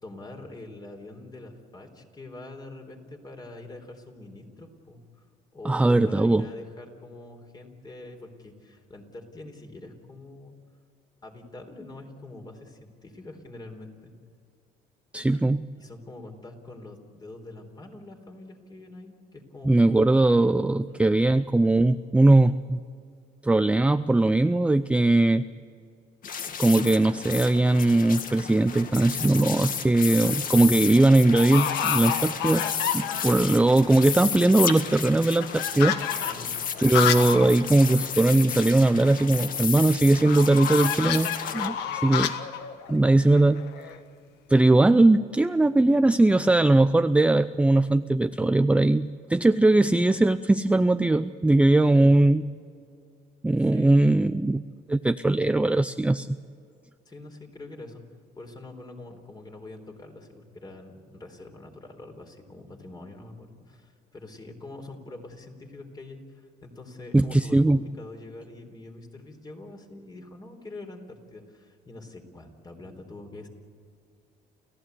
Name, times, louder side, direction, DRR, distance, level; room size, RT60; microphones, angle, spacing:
voice 1, 0.0-5.2 5.5-10.5 11.2-14.1 15.8-19.8 20.7-21.0 36.2-36.6 51.9-52.2 53.6-53.9 57.1-58.0 58.4-73.5, left 2 dB, 25° left, 4 dB, 3.9 m, -44 dB
voice 2, 5.6-6.4 15.1-15.7 19.6-22.8 23.4-25.4 26.6-32.7 32.9-36.3 36.8-42.3 42.9-43.7 44.5-52.5 53.4-54.6 54.9-56.4 67.1-67.8, right 2 dB, 5° right, 11 dB, 0.5 m, -20 dB
sound 1, 26.2-41.7, left 7 dB, 55° left, 2.1 m, -32 dB
sound 2, 29.0-29.5 30.0-30.5 30.7-30.8 31.3-33.5 33.9-34.0 34.2-37.5 37.8-37.9 38.2-38.3 40.2-44.0, left 9 dB, 85° left, 1.5 m, -30 dB
29.5 x 15.5 x 8.3 m, 2.3 s
cardioid pair, 110°, 17 cm